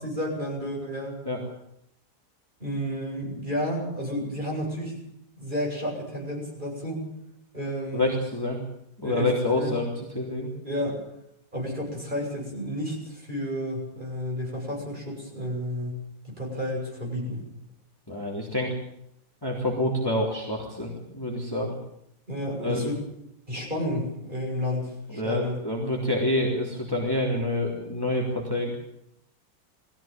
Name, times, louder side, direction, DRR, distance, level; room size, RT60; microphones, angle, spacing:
voice 1, 0.0-1.2 2.6-5.0 5.4-7.0 7.5-8.2 9.0-9.8 10.6-11.0 11.5-16.0 16.2-17.4 22.3-23.0 23.5-25.6, equal, 30° right, -1 dB, 8.1 m, -31 dB
voice 2, 7.9-8.6 9.0-10.5 18.1-18.8 19.4-21.8 22.6-22.9 25.1-28.8, left 1 dB, 15° left, -2 dB, 3.6 m, -27 dB
20.5 x 16.0 x 9.1 m, 0.77 s
omnidirectional pair, 1.8 m